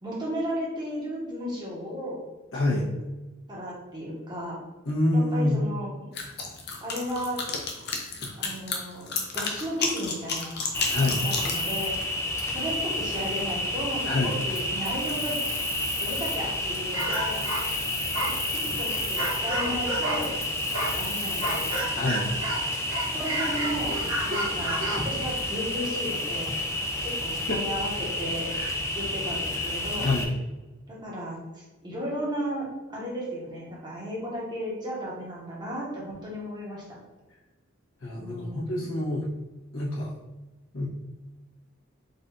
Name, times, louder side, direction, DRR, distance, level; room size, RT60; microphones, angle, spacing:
voice 1, 0.0-2.2 2.7-2.9 3.5-4.6 5.1-6.1 6.8-7.4 8.3-10.6 11.0-12.0 12.5-15.3 16.0-17.5 18.5-20.4 21.0-21.8 23.1-24.0 24.3-26.5 27.0-28.5 28.9-30.1 30.9-37.0 38.2-39.0, equal, 20° right, -5 dB, 1.2 m, -34 dB
voice 2, 2.5-2.8 4.8-5.7 8.2-8.3 10.9-11.2 14.0-14.3 21.9-22.4 27.0-27.1 27.5-27.6 28.5-28.7 29.5-29.7 30.0-30.3 38.0-39.3 39.7-40.1 40.7-40.8, left 2 dB, 70° left, -6 dB, 1.4 m, -27 dB
sound 1, 6.1-11.6, left 4 dB, 50° left, 0.7 m, -31 dB
Cricket, 10.7-30.2, left 1 dB, 15° left, 0.5 m, -30 dB
sound 2, 16.9-20.3 20.7-22.6 22.9-25.1, right 1 dB, 65° right, 1.2 m, -31 dB
4.1 x 2.7 x 4.0 m, 1.1 s
head